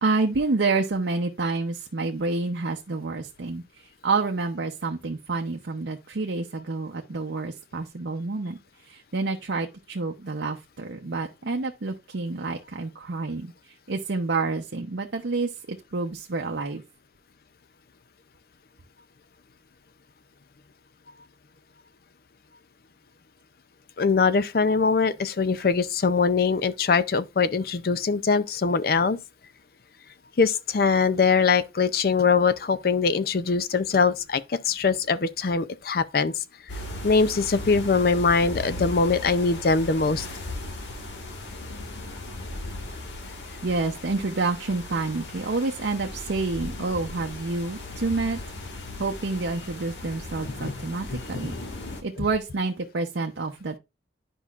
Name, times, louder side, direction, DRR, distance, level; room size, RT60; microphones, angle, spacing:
voice 1, 0.0-3.6 4.0-8.6 8.9-13.5 13.9-16.8 43.6-48.4 49.0-51.6 52.0-53.8, right 3 dB, 75° right, 0.7 m, -28 dB
voice 2, 24.0-29.2 30.4-36.3 37.0-40.3 50.4-50.8 51.1-51.2, left 4 dB, 55° left, 0.5 m, -22 dB
sound 1, 36.7-52.0, left 1 dB, 85° left, 1.5 m, -37 dB
10.0 x 5.4 x 2.4 m
head